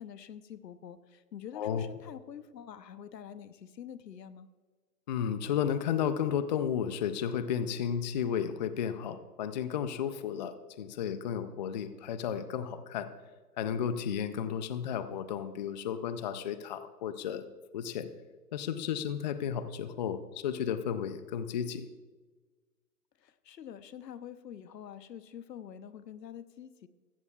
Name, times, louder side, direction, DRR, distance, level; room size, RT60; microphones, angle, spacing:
voice 1, 0.0-4.5 23.2-26.9, left 9 dB, 85° left, 14 dB, 0.9 m, -46 dB
voice 2, 1.5-1.9 5.1-13.1 13.6-17.4 17.7-18.1 18.5-21.9, left 8 dB, 30° left, 12 dB, 0.4 m, -33 dB
15.0 x 14.5 x 2.3 m, 1.4 s
hypercardioid pair, 130°, 48 cm